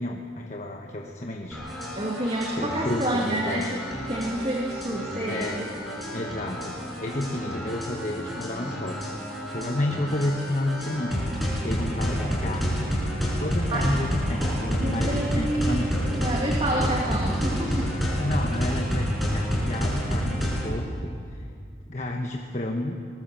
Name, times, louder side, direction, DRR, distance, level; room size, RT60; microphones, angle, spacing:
voice 1, 0.0-1.6 2.5-3.7 5.3-5.6 6.1-13.0 13.4-16.1 18.2-21.5 21.9-23.0, left 1 dB, 40° left, 2 dB, 1.3 m, -31 dB
sound 1, 1.5-20.7, equal, ahead, 5.8 m, -29 dB
voice 2, 2.0-3.8 4.1-5.8 13.7-14.1 14.8-15.8 16.1-18.0, right 1 dB, 30° right, -1 dB, 2.1 m, -28 dB
23.5 x 20.5 x 7.6 m, 2.3 s
head